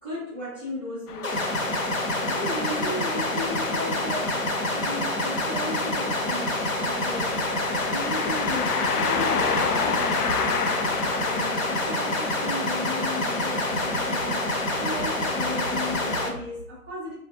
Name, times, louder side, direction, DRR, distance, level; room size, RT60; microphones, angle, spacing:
voice 1, 0.0-10.7 11.1-17.1, left 1 dB, 10° right, -15 dB, 0.5 m, -36 dB
sound 1, 1.1-16.3, left 6 dB, 80° left, 0.6 m, -33 dB
sound 2, 1.2-16.3, left 1 dB, 60° left, 1.0 m, -27 dB
3.5 x 2.4 x 2.8 m, 0.72 s
hypercardioid pair, 145°, 45 cm